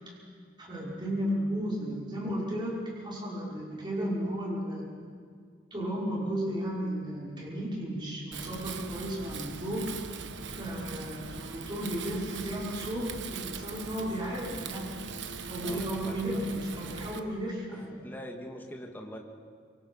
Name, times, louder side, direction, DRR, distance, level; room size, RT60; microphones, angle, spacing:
voice 1, 0.6-4.9 5.7-9.9 10.5-15.0 15.5-18.0, equal, 25° right, -4 dB, 5.8 m, -34 dB
Wind, 8.3-17.2, right 5 dB, 80° right, 1.2 m, -40 dB
voice 2, 15.6-16.2 17.7-19.2, equal, 10° left, 1 dB, 2.2 m, -43 dB
26.5 x 23.5 x 5.7 m, 2.1 s
head